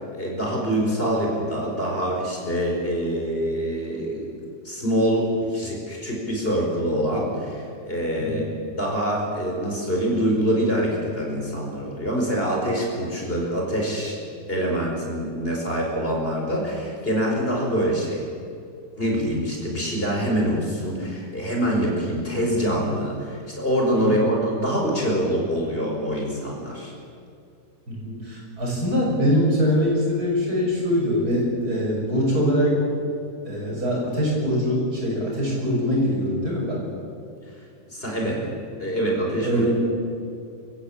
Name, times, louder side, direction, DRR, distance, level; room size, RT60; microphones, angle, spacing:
voice 1, 0.1-4.3 4.6-8.4 8.8-14.2 14.5-18.3 19.0-26.9 37.9-38.4 38.8-39.7, equal, 35° left, -1 dB, 5.2 m, -25 dB
voice 2, 27.9-32.8 33.4-36.8 38.2-38.3 39.4-39.7, equal, 70° right, -3 dB, 7.4 m, -23 dB
27.0 x 15.0 x 8.6 m, 2.5 s
omnidirectional pair, 1.7 m